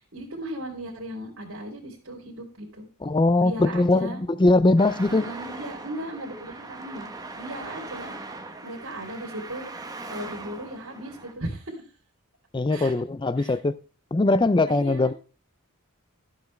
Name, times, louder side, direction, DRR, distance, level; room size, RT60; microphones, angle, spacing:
voice 1, 0.1-2.9 3.4-4.2 5.1-7.1 7.4-8.1 8.6-9.7 10.1-11.8 12.7-12.9 13.4-13.6 14.7-15.1, right 1 dB, 65° right, 3.4 m, -36 dB
voice 2, 3.0-5.2 12.5-13.8 14.1-15.1, left 2 dB, 20° left, 0.4 m, -21 dB
Traffic noise roadway noise, 4.8-11.3, right 2 dB, 15° right, 1.1 m, -40 dB
13.5 x 8.2 x 3.3 m
head